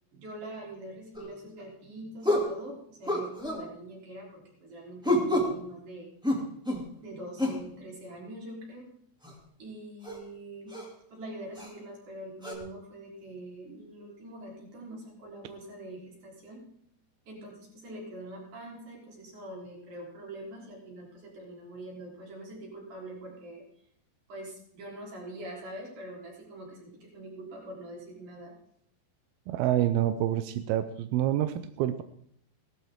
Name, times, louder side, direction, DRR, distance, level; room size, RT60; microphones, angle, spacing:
voice 1, 0.1-6.1 7.0-8.9 9.6-10.8 11.1-16.7 17.3-23.7 24.3-28.6, right 1 dB, 50° right, -2 dB, 4.9 m, -44 dB
sound 1, 1.1-1.3 2.2-2.5 3.1-3.6 5.0-5.6 6.2-6.9 7.4-7.6 9.2-9.3 10.0-10.2 10.7-10.9 11.6-11.7 12.4-12.5, left 1 dB, ahead, 1.0 m, -28 dB
voice 2, 29.5-32.0, right 12 dB, 80° right, 10 dB, 2.2 m, -27 dB
17.0 x 13.5 x 3.6 m, 0.69 s
omnidirectional pair, 4.9 m